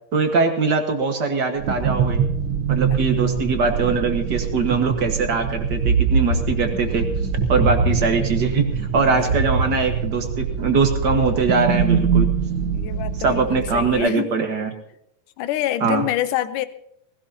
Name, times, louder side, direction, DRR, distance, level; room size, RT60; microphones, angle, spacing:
voice 1, 0.1-2.2 2.7-7.1 7.5-12.3 13.1-14.7 15.8-16.1, right 4 dB, 45° right, 4 dB, 1.5 m, -22 dB
sound 1, 1.6-14.0, right 6 dB, 65° right, 1.2 m, -23 dB
voice 2, 9.0-9.3 12.7-14.3 15.4-16.7, left 13 dB, 75° left, 12 dB, 2.2 m, -26 dB
19.5 x 17.0 x 2.9 m, 0.74 s
omnidirectional pair, 3.9 m